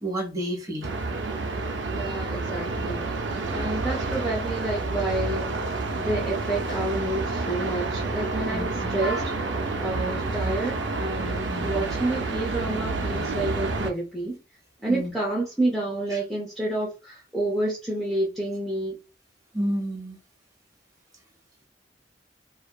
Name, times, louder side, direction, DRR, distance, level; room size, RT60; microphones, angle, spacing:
voice 1, 0.0-0.9 8.5-9.0 11.5-11.9 14.9-15.1 16.1-16.2 19.5-20.2, equal, 20° right, 1.0 m, -31 dB
sound 1, 0.8-13.9, right 3 dB, 90° right, 0.5 m, -29 dB
voice 2, 1.9-3.1 3.5-5.6 5.9-9.3 9.8-14.4 14.8-19.0, right 2 dB, ahead, 0.5 m, -29 dB
2.6 x 2.3 x 2.2 m
head